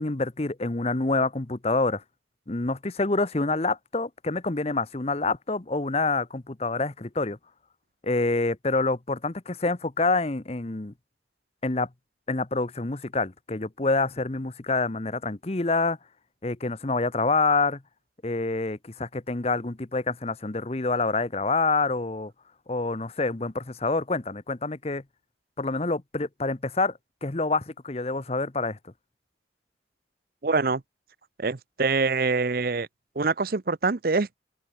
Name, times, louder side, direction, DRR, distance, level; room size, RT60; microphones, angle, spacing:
voice 1, 0.0-2.0 2.5-7.4 8.0-10.9 11.6-11.9 12.3-16.0 16.4-17.8 18.2-22.3 22.7-25.0 25.6-28.8, left 3 dB, 35° left, 0.9 m, -27 dB
voice 2, 30.4-30.8 31.4-32.9 33.2-34.4, right 4 dB, 55° right, 0.7 m, -25 dB
open air
head